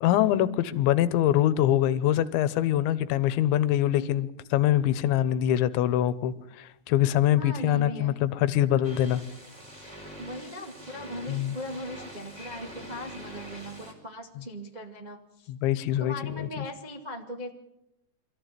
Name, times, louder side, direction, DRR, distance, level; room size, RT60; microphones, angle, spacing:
voice 1, 0.0-9.2 11.3-11.5 15.5-16.6, left 12 dB, 85° left, 15 dB, 3.3 m, -24 dB
voice 2, 7.4-8.1 10.2-15.5 16.0-17.5, equal, 60° right, 1 dB, 0.4 m, -39 dB
sound 1, 8.8-13.9, equal, 10° right, 4.2 m, -44 dB
25.0 x 15.0 x 9.1 m, 0.87 s
omnidirectional pair, 5.2 m